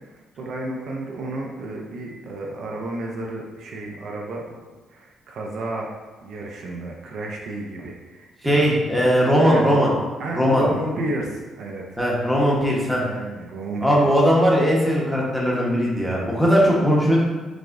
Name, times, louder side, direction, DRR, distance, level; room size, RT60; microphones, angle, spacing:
voice 1, 0.4-4.6 4.9-5.9 6.2-8.7 9.4-9.8 10.2-12.0 13.0-14.1 16.2-16.7, right 2 dB, 70° right, -1 dB, 0.5 m, -32 dB
voice 2, 8.4-9.9 10.3-10.7 12.0-13.0 13.8-17.2, equal, ahead, -5 dB, 1.0 m, -19 dB
4.8 x 2.4 x 2.5 m, 1.2 s
cardioid pair, 90°, 0 cm